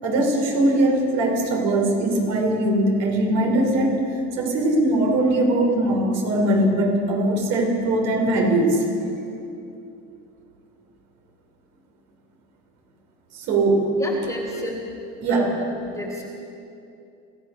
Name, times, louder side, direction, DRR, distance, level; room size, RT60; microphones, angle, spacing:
voice 1, 0.0-4.0 4.4-8.8 13.3-13.9 15.2-15.5, right 1 dB, 60° right, 1 dB, 5.2 m, -21 dB
voice 2, 14.0-14.8 15.3-16.2, left 1 dB, 10° left, -1 dB, 3.0 m, -32 dB
26.5 x 16.0 x 6.8 m, 2.7 s
cardioid pair, 150°, 31 cm